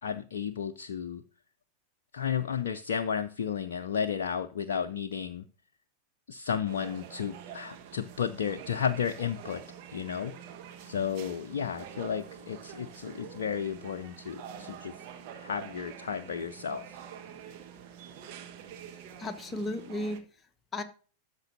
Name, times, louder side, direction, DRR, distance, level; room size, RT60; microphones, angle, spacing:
voice 1, 0.0-1.2 2.1-5.5 6.3-9.6 9.9-10.3 10.8-15.1 15.3-17.0, left 7 dB, 60° left, 8 dB, 0.5 m, -33 dB
sound 1, 6.7-20.2, right 8 dB, 45° right, 1.3 m, -46 dB
voice 2, 19.2-20.8, left 1 dB, 20° left, 7 dB, 1.2 m, -35 dB
13.0 x 6.7 x 2.6 m, 0.37 s
figure-of-eight pair, 90°, 0 cm